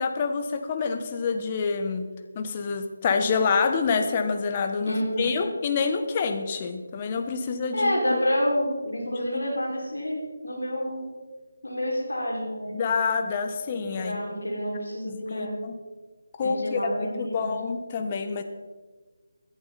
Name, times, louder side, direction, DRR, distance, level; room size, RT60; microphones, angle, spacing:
voice 1, 0.0-2.1 2.3-8.2 9.3-9.4 12.8-14.2 15.0-15.8 16.4-18.4, left 5 dB, 25° left, 6 dB, 1.2 m, -27 dB
voice 2, 4.9-5.4 7.7-11.0 11.6-12.8 13.6-15.6 16.4-17.5, equal, 75° left, -2 dB, 5.5 m, -29 dB
18.0 x 11.0 x 4.2 m, 1.3 s
figure-of-eight pair, 155°, 0 cm